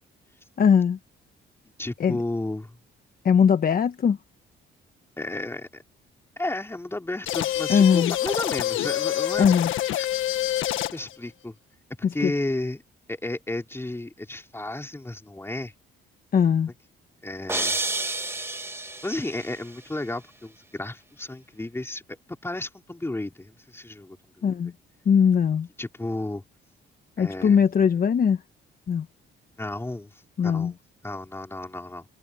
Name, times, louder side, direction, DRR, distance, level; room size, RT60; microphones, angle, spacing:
voice 1, 0.6-1.0 2.0-2.2 3.2-4.2 7.7-8.1 9.4-9.7 12.2-12.3 16.3-16.7 24.4-24.7 25.0-25.7 27.2-28.4 28.9-29.1 30.4-30.7, left 7 dB, 45° left, 1.1 m, -20 dB
voice 2, 1.8-2.8 5.2-5.8 6.4-9.5 10.0-10.1 10.9-11.5 12.1-12.8 13.1-15.7 17.2-17.9 19.0-22.0 22.4-24.5 25.8-26.4 27.2-27.6 29.6-30.8 31.0-32.1, left 2 dB, 10° left, 4.2 m, -33 dB
sound 1, 7.3-11.2, left 13 dB, 90° left, 1.6 m, -26 dB
sound 2, 17.5-19.6, right 2 dB, 10° right, 1.5 m, -30 dB
cardioid pair, 90°, 20 cm